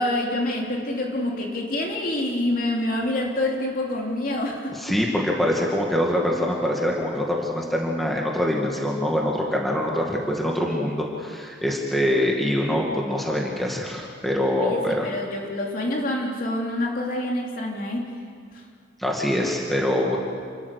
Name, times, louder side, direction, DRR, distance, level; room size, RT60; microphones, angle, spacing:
voice 1, 0.0-5.0 14.6-18.2, left 1 dB, 45° left, 0 dB, 3.1 m, -27 dB
voice 2, 4.7-15.1 19.0-20.2, left 1 dB, ahead, -2 dB, 2.2 m, -24 dB
28.5 x 13.5 x 8.4 m, 2.1 s
head